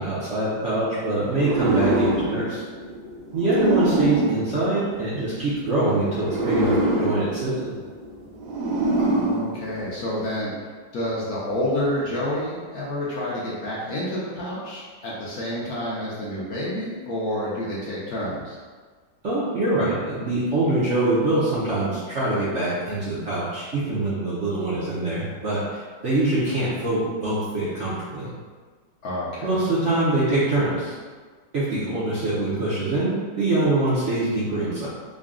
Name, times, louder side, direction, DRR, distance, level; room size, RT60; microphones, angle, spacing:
voice 1, 0.0-2.6 3.3-6.7 7.0-7.7 19.2-28.3 29.4-30.9 31.5-34.9, right 2 dB, 55° right, -9 dB, 0.8 m, -24 dB
sound 1, 1.3-5.4 6.1-10.1, right 1 dB, 85° right, 1.4 m, -25 dB
voice 2, 9.0-10.5 10.9-18.6 29.0-29.6, left 1 dB, 60° left, -6 dB, 1.1 m, -29 dB
3.9 x 2.3 x 3.6 m, 1.5 s
omnidirectional pair, 2.0 m